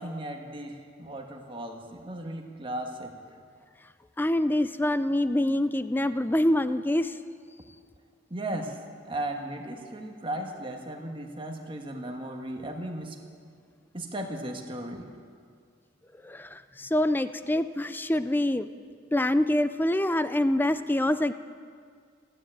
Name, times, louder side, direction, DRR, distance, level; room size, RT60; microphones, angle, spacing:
voice 1, 0.0-3.1 8.3-8.7 9.1-13.2 13.9-15.1, right 1 dB, 25° right, 3 dB, 1.4 m, -36 dB
voice 2, 4.2-7.1 16.2-18.7 19.1-21.3, left 1 dB, 10° left, 13 dB, 0.4 m, -25 dB
15.5 x 9.9 x 8.9 m, 2.1 s
head